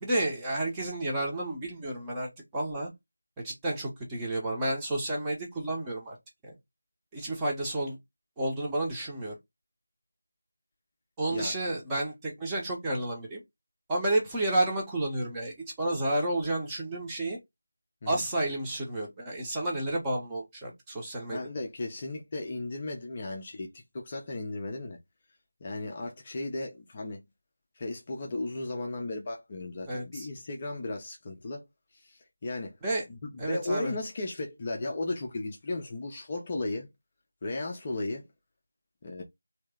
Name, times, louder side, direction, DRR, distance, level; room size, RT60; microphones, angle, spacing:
voice 1, 0.0-2.9 3.4-6.2 6.4-6.5 7.1-8.0 8.4-9.4 11.2-13.4 13.9-17.4 18.1-21.4 29.9-30.3 32.8-33.0 33.4-33.9, right 1 dB, 10° right, 0.8 m, -31 dB
voice 2, 21.3-25.0 25.6-27.2 27.8-31.7 31.9-32.7 33.1-36.9 37.4-38.3 39.0-39.2, left 2 dB, 25° left, 0.6 m, -35 dB
3.1 x 2.8 x 3.6 m
figure-of-eight pair, 165°, 0 cm